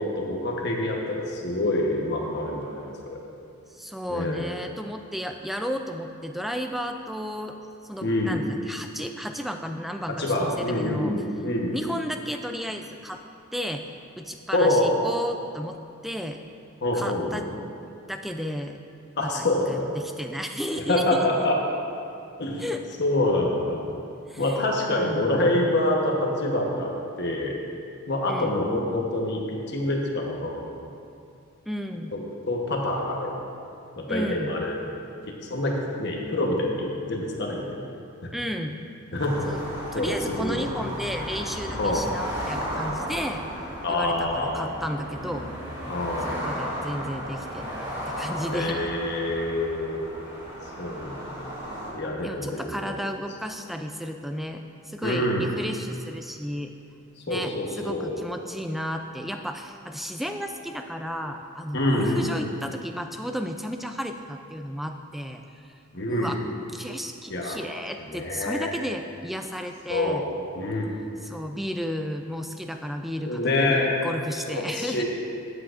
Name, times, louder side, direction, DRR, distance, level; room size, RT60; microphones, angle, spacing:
voice 1, 0.0-3.2 4.1-4.4 8.0-8.4 10.2-11.7 14.5-14.9 16.8-17.5 19.2-19.9 20.9-21.6 22.4-22.6 23.0-23.9 24.4-27.5 28.1-30.7 32.5-33.5 34.0-34.7 35.3-37.8 39.1-39.4 39.9-40.7 41.8-42.0 43.8-44.7 45.9-46.5 48.5-50.0 50.8-51.3 51.9-53.0 55.0-55.4 57.3-58.2 61.7-62.3 65.9-66.3 67.3-67.6 68.1-68.7 69.9-70.2 70.5-70.9 73.2-73.9 74.5-75.0, left 1 dB, 50° left, -1 dB, 1.1 m, -26 dB
voice 2, 3.7-7.6 7.8-11.1 11.7-13.2 13.5-13.8 14.2-15.8 16.0-16.4 16.9-17.5 18.1-18.8 19.2-21.4 22.6-22.8 24.3-24.4 24.9-25.2 28.3-28.5 31.7-32.2 34.1-34.5 38.3-38.8 39.4-39.6 39.9-43.4 43.9-45.5 46.3-48.9 52.2-56.7 57.3-65.7 66.1-66.4 66.7-70.3 71.2-75.0, equal, ahead, 5 dB, 0.3 m, -33 dB
sound 1, 39.2-51.9, equal, 15° right, 2.1 m, -34 dB
13.0 x 8.4 x 2.5 m, 2.5 s
head